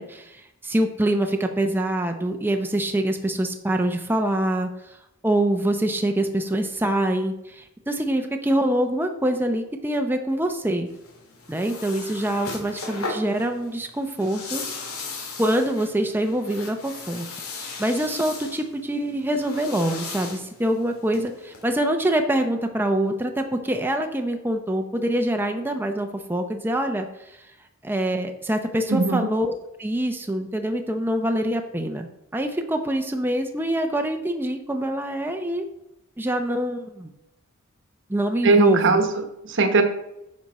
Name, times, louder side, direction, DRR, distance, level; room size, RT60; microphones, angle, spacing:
voice 1, 0.0-5.0 5.2-10.9 11.5-14.6 15.4-17.3 17.8-27.4 27.8-29.5 29.8-32.1 32.3-35.6 36.2-37.1 38.1-39.0, right 1 dB, 10° right, 4 dB, 0.7 m, -25 dB
sound 1, 10.9-21.6, left 3 dB, 80° left, 2.5 m, -37 dB
voice 2, 28.9-29.3 38.4-39.8, right 3 dB, 60° right, 7 dB, 1.2 m, -20 dB
10.0 x 6.3 x 4.2 m, 0.87 s
head